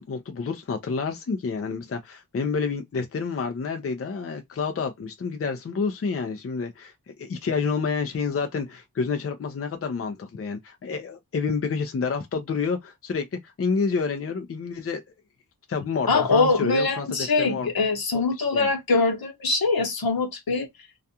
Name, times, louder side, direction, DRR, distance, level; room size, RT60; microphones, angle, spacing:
voice 1, 0.0-6.9 7.2-15.0 15.7-17.7 18.1-18.2 18.5-18.7, left 5 dB, 40° left, 0.5 m, -29 dB
voice 2, 16.1-20.7, left 3 dB, 75° left, 1.0 m, -23 dB
2.4 x 2.3 x 2.7 m
wide cardioid pair, 110°, 37 cm